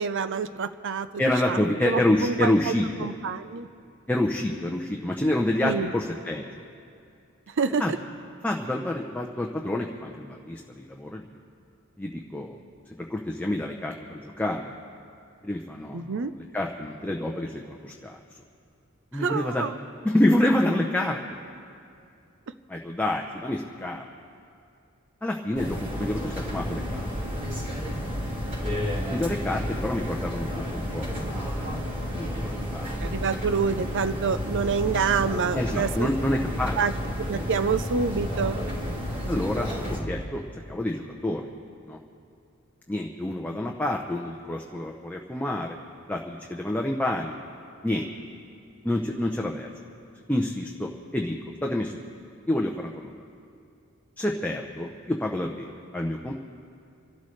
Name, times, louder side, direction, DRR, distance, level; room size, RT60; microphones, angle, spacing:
voice 1, 0.0-2.7 3.0-3.7 5.6-5.9 7.6-8.0 15.9-16.3 19.1-19.8 33.0-36.1 36.8-36.9 37.2-38.6, right 5 dB, 60° right, 11 dB, 0.6 m, -27 dB
voice 2, 1.2-3.1 4.1-6.5 7.8-7.9 8.4-11.3 12.0-12.6 13.1-14.7 15.4-18.2 19.1-19.6 20.0-21.2 22.7-24.0 25.2-27.1 29.1-31.8 32.1-32.9 35.5-36.8 39.3-39.7 40.0-41.5 41.9-42.0 42.9-45.8 46.1-47.4 47.8-48.1 48.8-49.7 50.3-52.0 52.5-53.1 54.2-56.3, left 1 dB, 5° left, 0 dB, 0.7 m, -28 dB
sound 1, 25.5-40.0, equal, 40° right, 3.3 m, -31 dB
28.5 x 12.5 x 3.2 m, 2.5 s
head